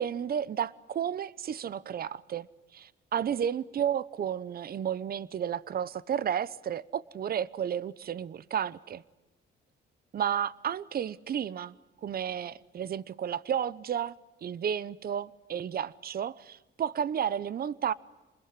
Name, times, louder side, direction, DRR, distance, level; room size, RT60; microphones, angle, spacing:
voice 1, 0.0-2.5 2.7-9.0 10.1-11.7 12.0-14.1 14.4-17.9, right 9 dB, 50° right, 19 dB, 0.8 m, -32 dB
28.0 x 21.0 x 9.7 m, 1.1 s
cardioid pair, 90°, 20 cm